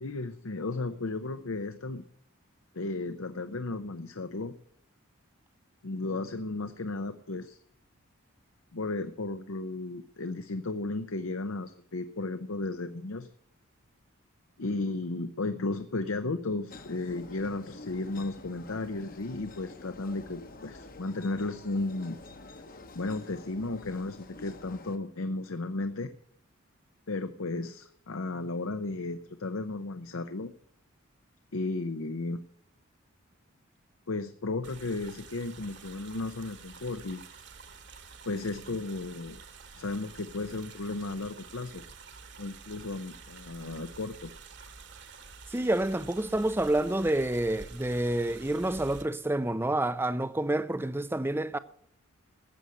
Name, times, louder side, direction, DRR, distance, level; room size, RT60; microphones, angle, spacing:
voice 1, 0.0-2.0 2.7-4.5 5.8-7.6 8.7-13.3 14.6-22.2 22.9-26.1 27.1-30.5 31.5-32.4 34.1-37.4 38.3-39.4 39.8-41.8 42.4-44.3, left 2 dB, 75° left, 0.8 m, -34 dB
sound 1, 16.7-25.0, left 2 dB, 40° left, 1.0 m, -48 dB
sound 2, 34.6-49.0, right 5 dB, 55° right, 1.5 m, -49 dB
voice 2, 45.5-51.6, right 1 dB, 10° right, 0.5 m, -28 dB
14.0 x 7.8 x 7.8 m
head